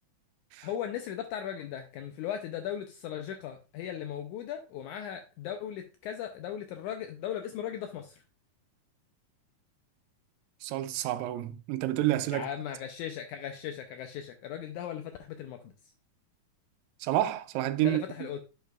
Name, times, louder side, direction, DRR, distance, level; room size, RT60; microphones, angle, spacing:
voice 1, 0.6-8.2 12.3-15.7 17.8-18.4, left 9 dB, 85° left, 1.8 m, -37 dB
voice 2, 10.6-12.5 17.0-18.0, right 14 dB, 90° right, 2.3 m, -29 dB
8.1 x 6.5 x 2.3 m
omnidirectional pair, 4.0 m